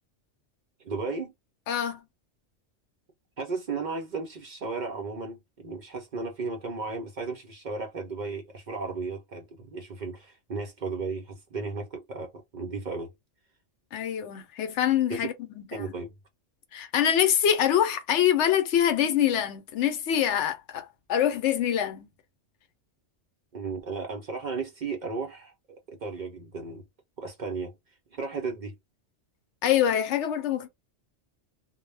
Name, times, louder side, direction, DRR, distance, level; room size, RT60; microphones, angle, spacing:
voice 1, 0.8-1.3 3.4-13.1 15.1-15.3 15.7-16.1 23.5-25.5 25.9-26.8 27.2-27.7 28.1-28.7, right 4 dB, 55° right, 0.6 m, -34 dB
voice 2, 1.7-2.0 13.9-15.9 16.7-22.1 29.6-30.7, left 10 dB, 80° left, 0.9 m, -25 dB
2.1 x 2.0 x 3.2 m
omnidirectional pair, 1.2 m